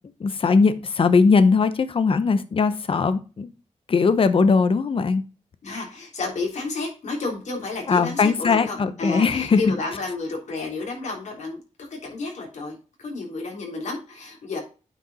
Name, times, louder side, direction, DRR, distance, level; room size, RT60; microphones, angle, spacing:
voice 1, 0.2-3.5 3.9-5.2 7.9-9.7, left 4 dB, 45° left, 12 dB, 0.8 m, -19 dB
voice 2, 5.6-14.6, left 3 dB, 70° left, 0 dB, 3.5 m, -31 dB
8.8 x 5.1 x 4.1 m, 0.33 s
wide cardioid pair, 105°, 13 cm